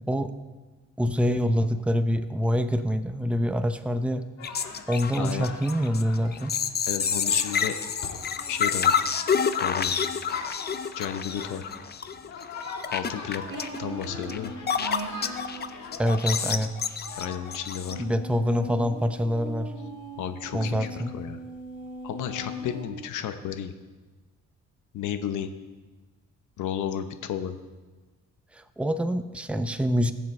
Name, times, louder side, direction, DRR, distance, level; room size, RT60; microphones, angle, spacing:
voice 1, 1.0-4.3 4.9-6.5 16.0-16.7 18.0-19.7 20.5-21.1 28.5-30.1, equal, 5° right, 8 dB, 0.6 m, -25 dB
sound 1, 4.4-18.2, left 4 dB, 65° left, 1.7 m, -42 dB
sound 2, 4.4-15.7 15.9-17.9, left 7 dB, 35° left, 0.6 m, -28 dB
voice 2, 5.2-5.5 6.9-7.7 8.5-9.0 9.6-9.9 10.9-11.7 12.9-14.5 17.2-18.1 20.2-21.4 22.0-23.7 24.9-25.5 26.6-27.6, left 9 dB, 80° left, 9 dB, 0.9 m, -33 dB
sound 3, 13.5-15.7 17.8-22.9, equal, 50° right, 2.6 m, -39 dB
19.0 x 7.2 x 3.2 m, 1.3 s
cardioid pair, 90°, 30 cm